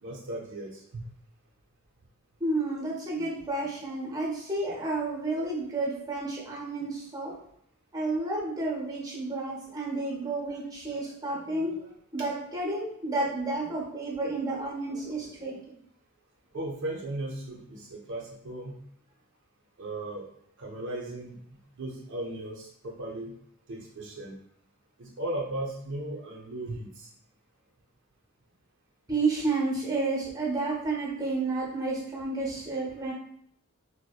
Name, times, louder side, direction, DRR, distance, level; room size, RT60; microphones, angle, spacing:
voice 1, 0.0-1.1 16.5-18.8 19.8-20.2 20.6-23.3 23.7-24.3 25.0-27.1, right 1 dB, 60° right, -2 dB, 0.5 m, -36 dB
voice 2, 2.4-7.3 7.9-15.8 29.1-33.1, right 2 dB, 20° right, -4 dB, 0.7 m, -31 dB
2.7 x 2.0 x 2.3 m, 0.66 s
head